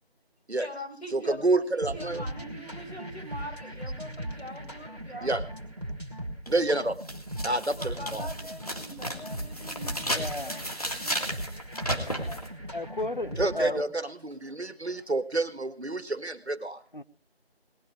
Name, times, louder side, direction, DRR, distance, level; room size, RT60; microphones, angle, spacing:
voice 1, 0.5-5.5 7.3-11.2 12.0-12.5, equal, 80° left, 3 dB, 5.1 m, -43 dB
voice 2, 1.1-2.2 5.2-5.4 6.5-7.0 7.4-8.3 13.4-16.8, right 2 dB, 90° right, 11 dB, 1.9 m, -28 dB
sound 1, 1.8-13.8, right 1 dB, 40° right, 2.0 m, -38 dB
sound 2, 6.5-6.6 7.0-12.5, equal, 35° left, 2.1 m, -34 dB
voice 3, 10.1-10.5 12.7-13.8 16.9-17.0, left 1 dB, 50° left, 13 dB, 0.9 m, -33 dB
19.5 x 11.0 x 4.8 m, 0.35 s
figure-of-eight pair, 180°, 32 cm